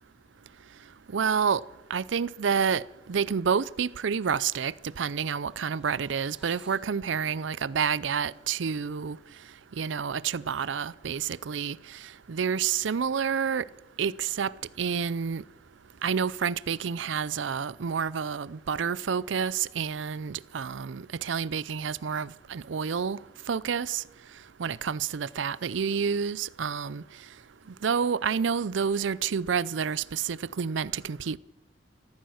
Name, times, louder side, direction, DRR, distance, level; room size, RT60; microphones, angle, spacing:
voice 1, 1.1-1.6 1.9-2.8 3.1-9.2 9.8-11.8 12.3-13.6 14.0-14.5 14.8-15.4 16.0-23.2 23.5-24.0 24.6-27.0 27.8-31.4, right 6 dB, 75° right, 0.5 m, -29 dB
sound 1, 4.5-6.9, right 1 dB, 5° right, 2.8 m, -61 dB
15.5 x 14.0 x 6.4 m
head